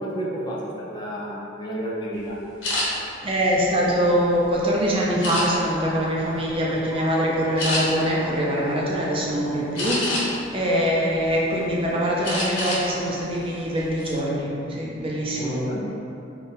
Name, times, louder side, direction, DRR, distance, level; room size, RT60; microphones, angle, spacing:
voice 1, 0.0-2.4 15.3-15.9, equal, 20° left, -5 dB, 0.4 m, -30 dB
sound 1, 2.6-2.9 3.5-4.5 5.2-5.8 6.3-6.6 6.9-7.1 7.6-7.8 9.8-10.5 11.0-11.7 12.2-12.8 13.2-13.4 13.8-14.1, left 1 dB, 75° left, 1.4 m, -28 dB
voice 2, 3.2-15.6, equal, 30° right, -4 dB, 0.5 m, -23 dB
3.6 x 2.4 x 4.1 m, 2.9 s
head